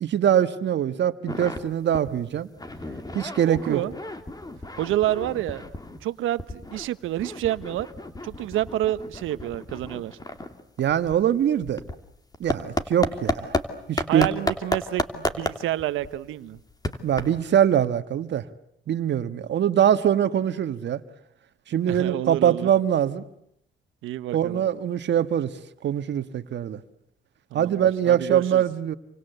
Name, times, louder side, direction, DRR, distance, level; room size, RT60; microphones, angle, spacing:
voice 1, 0.0-2.5 3.1-3.8 10.8-11.8 12.4-13.5 13.9-14.3 17.0-18.4 18.9-21.0 21.7-23.2 24.3-25.5 25.8-26.8 27.5-29.0, right 10 dB, 65° right, 11 dB, 1.6 m, -23 dB
sound 1, 1.3-1.6 1.9-2.1 2.4-6.0 6.4-13.6 14.0-17.6, left 2 dB, 20° left, 2.8 m, -32 dB
voice 2, 3.5-3.9 4.8-5.7 6.0-7.9 8.2-10.2 14.1-16.6 21.9-22.7 24.0-24.6 27.5-28.6, right 14 dB, 85° right, 13 dB, 1.2 m, -28 dB
29.0 x 25.0 x 8.1 m, 0.73 s
cardioid pair, 90°, 20 cm